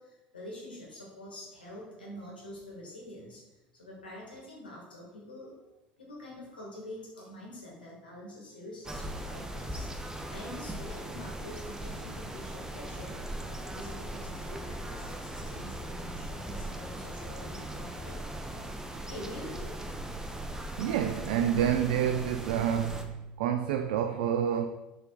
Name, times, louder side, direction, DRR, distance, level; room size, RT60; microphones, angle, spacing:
voice 1, 0.0-5.7 6.0-9.9 10.3-13.2 13.7-18.3 19.1-19.8, left 1 dB, 85° left, 2.2 m, -46 dB
sound 1, 8.8-23.0, right 1 dB, 10° right, 0.9 m, -39 dB
voice 2, 20.8-24.7, right 9 dB, 65° right, 0.4 m, -28 dB
6.8 x 3.9 x 4.3 m
figure-of-eight pair, 65°, 5 cm